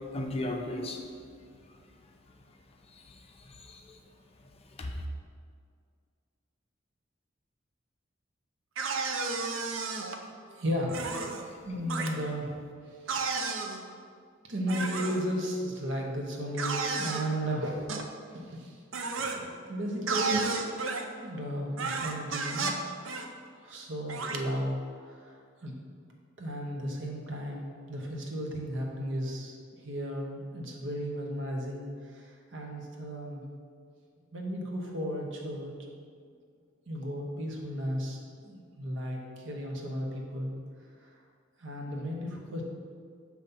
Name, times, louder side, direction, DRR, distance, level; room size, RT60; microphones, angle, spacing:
voice 1, 0.1-1.0 2.9-4.0 4.8-5.0, left 1 dB, 30° left, 2 dB, 0.5 m, -36 dB
sound 1, 8.8-10.2 10.9-11.4 11.9-12.1 13.1-13.8 14.7-15.2 16.6-17.2 17.9-18.0 18.9-19.4 20.1-21.0 21.8-22.8 23.0-23.3 24.1-24.4, right 4 dB, 90° right, 0.6 m, -32 dB
voice 2, 10.4-12.6 12.9-13.4 14.4-17.9 18.3-18.8 19.1-20.8 21.2-22.8 23.6-24.8 25.1-25.3 25.6-25.7 26.4-31.9 32.1-33.4 34.3-35.7 36.9-38.2 38.4-40.5 41.0-41.1 41.6-42.6, equal, 70° right, 0 dB, 1.0 m, -35 dB
6.8 x 3.1 x 5.4 m, 2.1 s
head